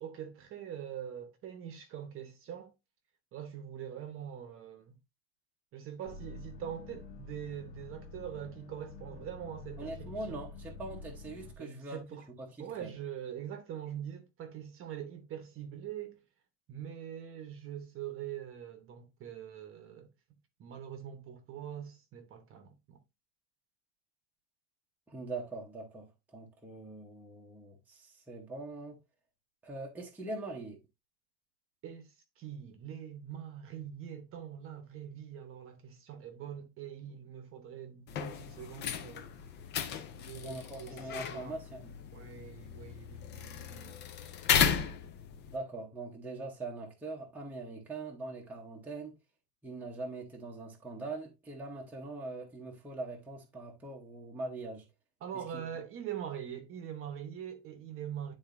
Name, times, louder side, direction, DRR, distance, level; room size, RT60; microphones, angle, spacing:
voice 1, 0.0-2.7 3.3-5.0 5.7-10.4 11.6-12.2 12.6-16.2 16.7-20.1 20.6-23.0 31.8-39.3 40.2-41.6 42.1-44.0 55.2-58.3, right 9 dB, 30° right, 0.9 m, -43 dB
sound 1, 6.1-11.6, left 4 dB, 55° left, 0.8 m, -48 dB
voice 2, 9.8-12.0 12.4-12.9 25.1-29.0 29.6-30.8 40.4-41.9 45.5-49.2 49.6-54.8 55.3-55.6, right 2 dB, 5° right, 0.8 m, -42 dB
sound 2, 38.1-45.6, left 8 dB, 25° left, 0.4 m, -35 dB
10.0 x 3.9 x 2.5 m
cardioid pair, 175°, 43 cm